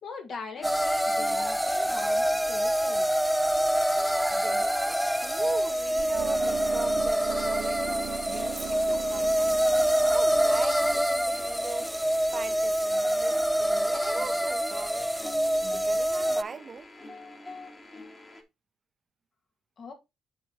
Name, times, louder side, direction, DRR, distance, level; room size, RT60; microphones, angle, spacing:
voice 1, 0.0-3.1 19.8-19.9, left 5 dB, 55° left, 2.3 m, -42 dB
sound 1, 0.6-18.4, left 1 dB, 25° left, 2.1 m, -47 dB
sound 2, 0.6-16.4, equal, ahead, 0.3 m, -26 dB
voice 2, 4.3-9.5 10.1-11.9 12.3-15.1 15.6-16.9, right 5 dB, 40° right, 0.7 m, -40 dB
sound 3, 6.0-12.0, right 10 dB, 75° right, 0.5 m, -40 dB
7.6 x 4.3 x 4.2 m
cardioid pair, 90°, 0 cm